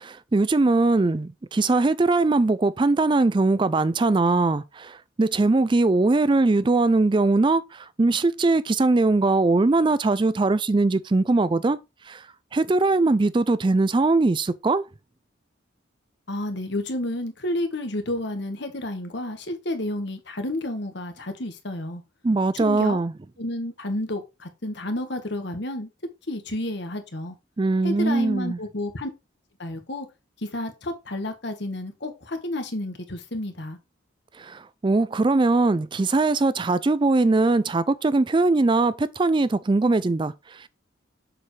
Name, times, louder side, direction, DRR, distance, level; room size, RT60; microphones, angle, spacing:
voice 1, 0.0-11.8 12.1-12.3 12.5-14.8 22.2-23.1 27.6-28.6 34.4-40.7, right 3 dB, 25° right, 0.4 m, -21 dB
voice 2, 16.3-22.0 22.5-23.0 23.4-25.9 26.3-27.3 27.8-29.1 29.6-30.1 30.5-33.8, left 1 dB, 60° left, 1.6 m, -31 dB
7.4 x 6.9 x 3.3 m
head